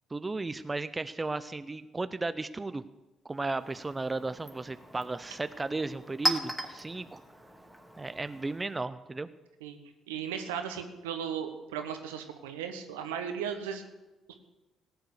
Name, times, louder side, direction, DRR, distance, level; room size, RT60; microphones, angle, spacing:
voice 1, 0.1-2.8 3.2-7.2 8.0-9.3, right 3 dB, 25° right, 13 dB, 0.6 m, -35 dB
Chink clink, 3.3-8.8, right 1 dB, 5° right, 2.2 m, -38 dB
voice 2, 10.1-13.8, right 8 dB, 80° right, 7 dB, 1.2 m, -36 dB
17.5 x 8.1 x 6.6 m, 1.1 s
hypercardioid pair, 45°, 0 cm